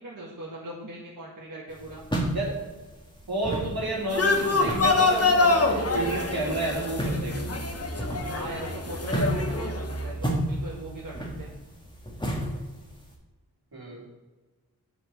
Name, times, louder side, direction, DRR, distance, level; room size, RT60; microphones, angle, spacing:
voice 1, 0.0-2.0 8.3-11.5, right 1 dB, 55° right, -5 dB, 1.8 m, -40 dB
sound 1, 1.7-13.1, right 1 dB, 10° left, 1.8 m, -33 dB
voice 2, 3.3-7.4 13.7-14.0, right 2 dB, 75° right, -3 dB, 2.7 m, -30 dB
sound 2, 4.1-10.0, left 3 dB, 40° left, 1.1 m, -25 dB
7.7 x 4.7 x 6.7 m, 1.2 s
cardioid pair, 45°, 38 cm